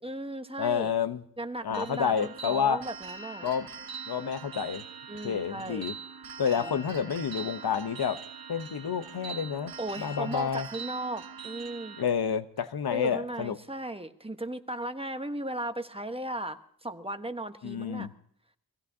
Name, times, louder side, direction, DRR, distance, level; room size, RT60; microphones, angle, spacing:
voice 1, 0.0-0.9 1.4-3.5 5.1-5.8 6.6-6.8 9.8-12.0 12.9-18.1, right 1 dB, 15° right, 1.1 m, -36 dB
voice 2, 0.6-1.2 1.6-2.8 3.4-3.7 4.1-4.8 5.2-5.9 6.4-8.2 8.5-10.7 12.0-13.6 17.6-18.1, left 7 dB, 75° left, 0.9 m, -29 dB
sound 1, 1.7-12.0, right 6 dB, 65° right, 1.0 m, -43 dB
24.5 x 16.5 x 2.7 m
wide cardioid pair, 75°, 38 cm